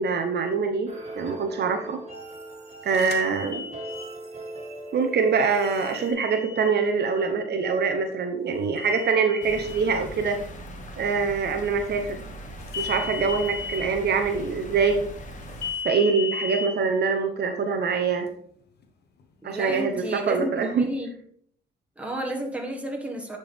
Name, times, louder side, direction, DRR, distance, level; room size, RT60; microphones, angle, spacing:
voice 1, 0.0-2.0 2.8-3.6 4.9-10.4 11.0-12.2 12.8-15.0 15.8-18.3 19.4-20.9, right 5 dB, 55° right, 5 dB, 0.8 m, -24 dB
sound 1, 0.9-6.1, right 2 dB, 35° right, 2.2 m, -40 dB
Subway card swipe insufficient fare, 2.9-4.1 5.6-6.7 8.8-9.8 12.7-13.8 15.6-16.7, left 6 dB, 55° left, 1.3 m, -35 dB
sound 2, 9.4-15.7, right 1 dB, 40° left, 1.4 m, -40 dB
voice 2, 19.4-21.1 22.0-23.4, right 1 dB, 5° right, 0 dB, 1.7 m, -31 dB
10.0 x 4.5 x 3.5 m, 0.62 s
cardioid pair, 90°, 20 cm